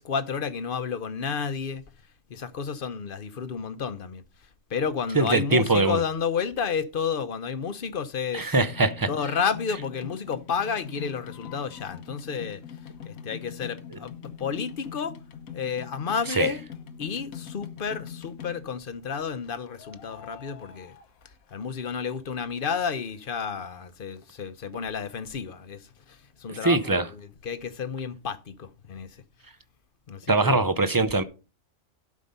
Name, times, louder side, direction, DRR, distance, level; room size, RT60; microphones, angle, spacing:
voice 1, 0.0-1.8 2.3-8.6 9.1-15.1 15.5-16.6 17.0-20.9 21.2-29.2 30.1-30.7, left 6 dB, 45° left, 0.9 m, -31 dB
voice 2, 5.1-6.0 8.3-9.1 16.4-16.5 26.5-27.1 30.3-31.2, right 3 dB, 30° right, 0.4 m, -22 dB
sound 1, 8.6-18.9 19.7-21.8 22.1-23.1 23.6-23.7 23.9-24.0 24.2-24.3 24.7-24.8 25.0-25.1, left 9 dB, 90° left, 1.3 m, -43 dB
12.0 x 5.2 x 5.3 m
omnidirectional pair, 1.4 m